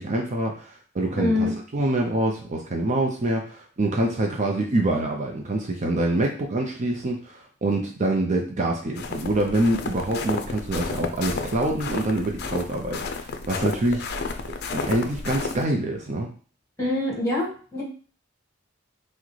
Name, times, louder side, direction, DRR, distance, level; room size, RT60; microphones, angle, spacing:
voice 1, 0.0-14.1 14.7-16.3, right 1 dB, 35° right, 1 dB, 0.5 m, -25 dB
voice 2, 1.1-1.5 16.8-17.8, left 2 dB, 15° left, -3 dB, 1.6 m, -25 dB
sound 1, 9.0-15.6, left 4 dB, 55° left, 0.5 m, -32 dB
5.9 x 2.1 x 3.2 m, 0.41 s
head